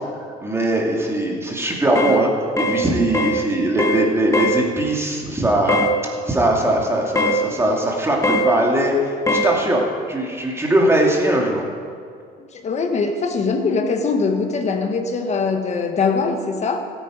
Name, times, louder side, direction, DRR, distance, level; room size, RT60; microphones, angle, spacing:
voice 1, 0.4-2.3 2.6-9.8 10.1-11.6, right 1 dB, 15° right, -1 dB, 2.5 m, -20 dB
sound 1, 2.0-2.2 2.6-2.8 3.1-3.4 3.8-4.0 4.3-4.6 5.7-5.9 7.2-7.4 8.2-8.5 9.3-9.5, left 1 dB, 20° left, 1.2 m, -20 dB
voice 2, 12.5-16.8, left 4 dB, 40° left, 5 dB, 1.4 m, -22 dB
15.5 x 9.4 x 5.0 m, 2.2 s
cardioid pair, 110°, 17 cm